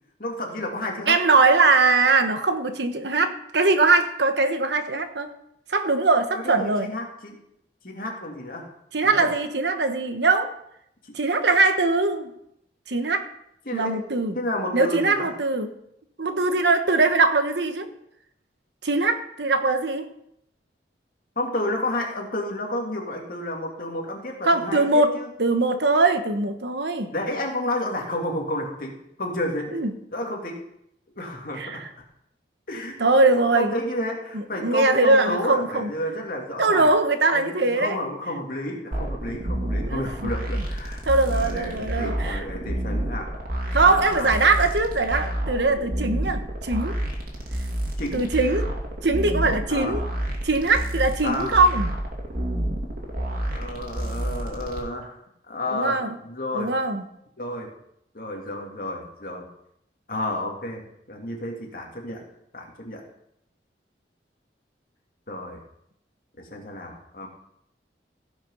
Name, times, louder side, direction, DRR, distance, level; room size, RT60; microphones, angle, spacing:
voice 1, 0.2-1.2 6.3-7.4 7.8-8.7 9.0-9.3 11.0-11.2 13.7-14.0 14.3-15.3 21.4-25.3 27.1-29.8 30.1-30.6 31.2-31.8 32.7-33.0 33.5-36.9 37.3-43.3 43.8-44.3 48.0-48.3 49.7-50.0 51.2-51.6 53.5-55.2 55.5-56.8 57.4-57.7 58.1-59.5 60.1-62.2 62.5-63.0 65.3-65.6 66.4-67.3, left 1 dB, 55° left, 0 dB, 2.4 m, -31 dB
voice 2, 1.1-5.3 5.7-6.9 8.9-10.5 11.1-12.3 12.9-13.3 13.7-14.4 14.7-15.7 16.2-17.9 18.8-20.0 24.4-25.1 25.4-27.1 29.7-29.9 31.6-31.8 33.0-33.7 34.3-35.9 36.6-37.9 39.9-40.3 41.1-42.4 43.7-46.9 48.1-48.7 49.0-50.0 50.4-51.9 55.7-56.1 56.5-57.0, right 3 dB, 75° right, 8 dB, 1.2 m, -21 dB
sound 1, 38.9-54.8, right 1 dB, 55° right, 2.5 m, -29 dB
16.0 x 6.0 x 5.5 m, 0.76 s
head